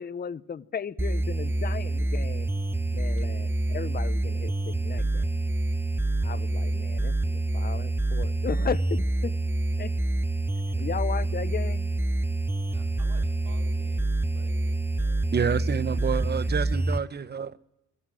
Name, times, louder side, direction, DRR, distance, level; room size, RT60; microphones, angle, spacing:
voice 1, 0.0-2.5 2.9-5.3 6.2-9.3 9.8-9.9 10.8-11.9, left 7 dB, 30° left, 16 dB, 0.8 m, -35 dB
sound 1, 1.0-17.0, right 2 dB, 5° right, 0.9 m, -27 dB
voice 2, 12.7-15.1, right 5 dB, 75° right, 3 dB, 3.4 m, -52 dB
voice 3, 15.3-17.6, right 6 dB, 35° right, 15 dB, 0.9 m, -28 dB
22.0 x 15.5 x 7.8 m, 0.94 s
cardioid pair, 90°, 30 cm